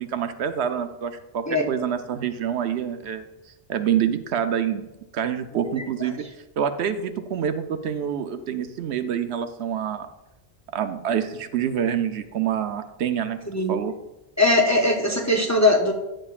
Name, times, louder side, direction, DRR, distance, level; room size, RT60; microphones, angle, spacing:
voice 1, 0.0-3.2 3.7-4.9 5.1-6.2 6.6-10.1 10.7-13.4 13.7-13.9, right 8 dB, 85° right, 9 dB, 0.9 m, -26 dB
voice 2, 13.5-13.8 14.4-15.9, left 2 dB, 20° left, 1 dB, 0.5 m, -20 dB
9.7 x 7.5 x 2.4 m, 0.97 s
omnidirectional pair, 1.1 m